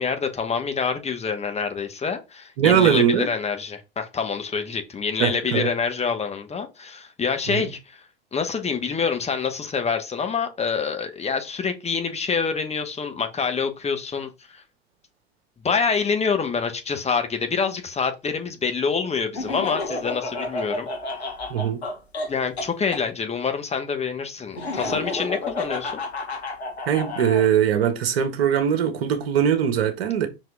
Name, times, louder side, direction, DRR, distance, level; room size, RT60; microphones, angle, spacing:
voice 1, 0.0-8.0 8.3-14.6 15.6-20.9 22.3-26.0, left 5 dB, 20° left, 1.3 m, -26 dB
voice 2, 2.6-3.3 5.2-5.7 7.5-7.6 21.5-21.8 26.9-30.3, right 8 dB, 65° right, 1.6 m, -21 dB
Laughter, 19.3-23.0 24.5-27.5, left 2 dB, 80° left, 1.7 m, -31 dB
5.8 x 4.7 x 3.5 m
figure-of-eight pair, 85°, 32 cm